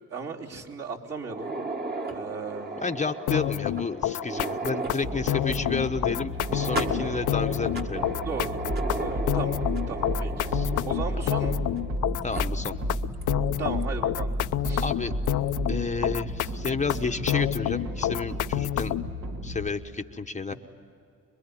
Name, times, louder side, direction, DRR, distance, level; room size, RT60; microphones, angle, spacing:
voice 1, 0.1-1.5 2.0-3.0 8.2-8.7 8.9-10.6 10.9-11.6 13.6-14.3 14.6-14.9 20.5-20.6, right 5 dB, 55° right, -3 dB, 3.5 m, -36 dB
sound 1, 1.2-12.0 12.3-12.4 13.2-13.3 13.8-13.9 15.3-15.5, right 3 dB, 35° right, 2.0 m, -35 dB
voice 2, 2.8-8.0 10.5-10.7 12.2-12.8 14.8-15.1 15.7-19.1 19.4-20.5, left 4 dB, 25° left, 7 dB, 1.0 m, -31 dB
sound 2, 3.3-19.1, left 13 dB, 80° left, 0.7 m, -29 dB
sound 3, 5.0-19.7, equal, 70° right, 2.9 m, -33 dB
27.0 x 22.0 x 9.7 m, 2.5 s
cardioid pair, 90°, 30 cm